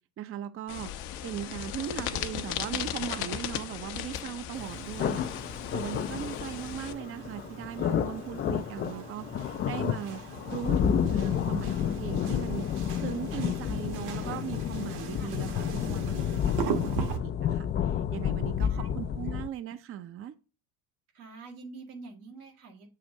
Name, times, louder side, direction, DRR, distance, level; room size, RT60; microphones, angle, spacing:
voice 1, 0.2-5.3 5.7-12.7 13.0-20.3, right 10 dB, 30° right, 0.5 m, -39 dB
sound 1, 0.7-6.9, left 11 dB, 65° left, 0.8 m, -36 dB
sound 2, 4.5-17.2, right 7 dB, 60° right, 1.2 m, -40 dB
sound 3, 5.0-19.5, left 9 dB, 25° left, 0.3 m, -30 dB
voice 2, 18.5-19.1 21.1-22.9, right 3 dB, 85° right, 1.9 m, -47 dB
7.5 x 2.6 x 5.2 m
hypercardioid pair, 75°, 43 cm